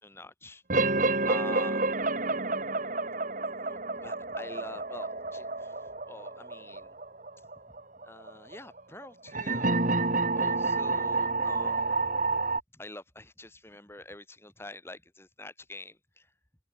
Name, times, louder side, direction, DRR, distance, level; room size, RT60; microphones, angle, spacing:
voice 1, 0.0-0.6 1.3-1.9 3.6-6.9 8.0-9.7 10.3-12.2 12.7-16.3, left 2 dB, 15° left, 5.1 m, -46 dB
sound 1, 0.7-12.6, right 3 dB, 40° right, 2.7 m, -29 dB
head